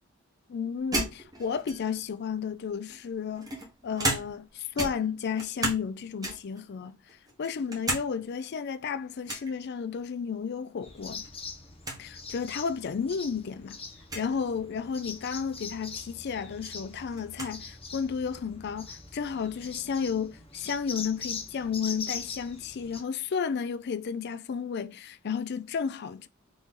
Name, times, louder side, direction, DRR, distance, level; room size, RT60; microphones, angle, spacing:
voice 1, 0.5-3.6 3.8-7.0 7.4-11.2 12.0-13.8 14.1-26.3, left 6 dB, 50° left, 0.4 m, -32 dB
sound 1, 0.9-2.1 2.9-4.5 4.8-5.9 6.2-6.6 7.1-8.1 8.4-8.5 9.3-9.5 11.0-11.3 11.6-11.7 11.8-12.0 12.8-12.9 14.0-14.3 16.0-16.1 16.4-17.6, right 2 dB, 20° right, 1.3 m, -34 dB
sound 2, 10.8-23.0, left 5 dB, 25° left, 0.8 m, -42 dB
4.1 x 3.1 x 3.6 m
head